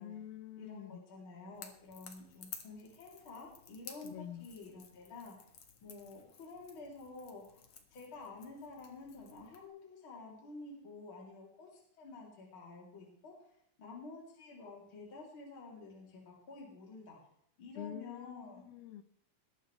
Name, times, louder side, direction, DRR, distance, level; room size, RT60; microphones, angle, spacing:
voice 1, 0.0-1.0 4.0-4.5 17.8-19.0, left 11 dB, 85° left, 11 dB, 2.8 m, -46 dB
voice 2, 0.6-5.5 5.8-17.2 17.6-18.6, left 3 dB, 35° left, -2 dB, 3.9 m, -50 dB
Crackle / Crack, 1.5-9.7, left 7 dB, 55° left, 2.2 m, -55 dB
21.0 x 11.0 x 3.4 m, 0.67 s
omnidirectional pair, 4.3 m